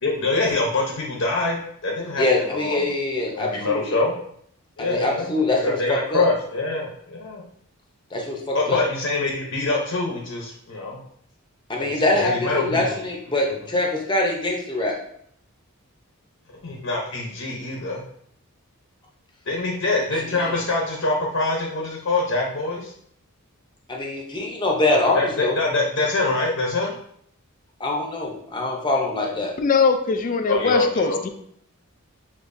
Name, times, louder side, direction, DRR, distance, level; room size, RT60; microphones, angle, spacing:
voice 1, 0.0-2.8 3.3-4.1 4.8-7.4 8.5-11.0 11.8-13.0 13.4-13.6 16.6-18.0 19.5-22.9 24.9-26.9 29.3-29.4 30.5-31.2, left 2 dB, 65° left, -1 dB, 0.8 m, -25 dB
voice 2, 2.2-3.9 4.8-6.3 8.1-8.8 11.7-15.0 20.3-20.6 23.9-25.5 27.8-29.5, left 2 dB, 20° left, -1 dB, 0.7 m, -24 dB
voice 3, 29.6-31.3, left 5 dB, 35° left, 7 dB, 0.3 m, -21 dB
6.4 x 2.9 x 2.6 m, 0.67 s
head